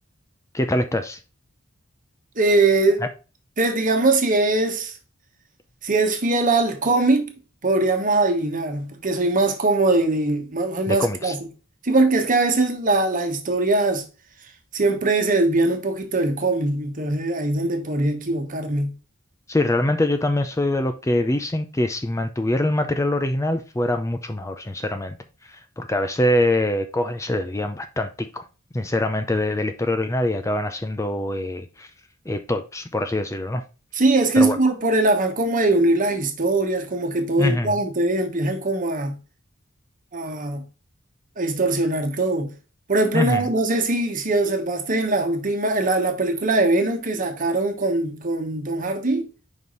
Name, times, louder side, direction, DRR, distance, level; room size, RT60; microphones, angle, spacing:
voice 1, 0.5-1.2 10.9-11.3 19.5-25.2 25.5-28.4 28.7-31.9 32.3-33.6 34.4-34.6 37.4-37.8 43.1-43.5, left 1 dB, 15° left, 0.5 m, -24 dB
voice 2, 2.4-3.0 3.6-4.9 5.8-7.3 7.6-11.4 11.8-14.0 14.7-18.9 33.9-39.2 40.1-40.6 41.4-42.5 42.9-49.3, right 2 dB, 40° right, 1.3 m, -21 dB
5.4 x 4.8 x 3.9 m
head